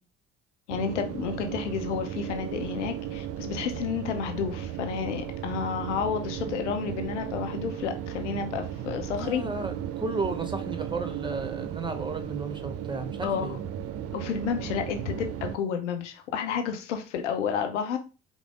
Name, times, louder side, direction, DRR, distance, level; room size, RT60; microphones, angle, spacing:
voice 1, 0.7-9.4 13.2-13.6 14.1-18.0, left 7 dB, 75° left, 6 dB, 0.6 m, -31 dB
sound 1, 0.7-15.6, right 10 dB, 45° right, 0.5 m, -35 dB
voice 2, 9.1-13.6, right 3 dB, 15° right, 7 dB, 0.8 m, -33 dB
5.0 x 2.0 x 3.5 m, 0.32 s
figure-of-eight pair, 50°, 36 cm